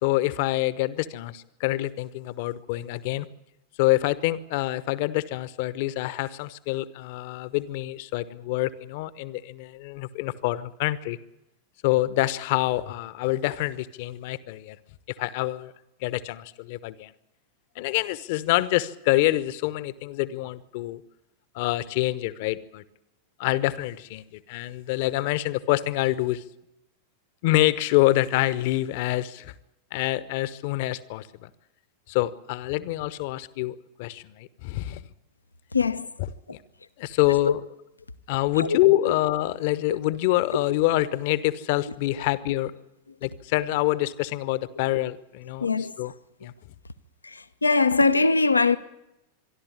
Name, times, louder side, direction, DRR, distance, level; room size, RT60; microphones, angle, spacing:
voice 1, 0.0-3.3 3.8-11.2 11.8-14.8 15.2-15.7 16.0-17.1 17.7-21.0 21.5-22.8 23.4-26.4 27.4-29.5 29.9-31.5 32.1-35.0 36.5-36.6 37.0-37.6 38.3-42.7 43.2-46.1 46.4-46.5, left 16 dB, 50° left, 1.0 m, -26 dB
voice 2, 35.7-36.1 38.6-38.8 45.6-45.9 47.2-48.8, left 4 dB, 80° left, 0.8 m, -22 dB
25.5 x 12.0 x 9.6 m
figure-of-eight pair, 90°, 0 cm